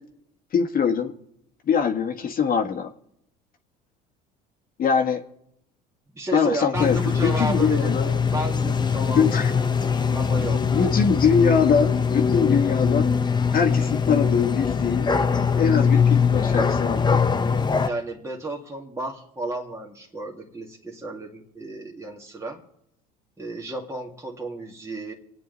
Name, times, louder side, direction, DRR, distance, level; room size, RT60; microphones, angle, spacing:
voice 1, 0.5-1.1 1.7-2.9 4.8-5.2 6.3-8.0 9.1-9.5 10.7-13.1 13.5-15.1 15.5-17.3, left 6 dB, 45° left, 5 dB, 1.6 m, -22 dB
voice 2, 6.1-10.7 17.9-22.6 23.4-25.1, right 2 dB, 15° right, 0 dB, 2.2 m, -33 dB
sound 1, 6.7-17.9, left 6 dB, 20° left, 1.0 m, -22 dB
26.0 x 9.2 x 4.0 m, 0.77 s
hypercardioid pair, 80°, 20 cm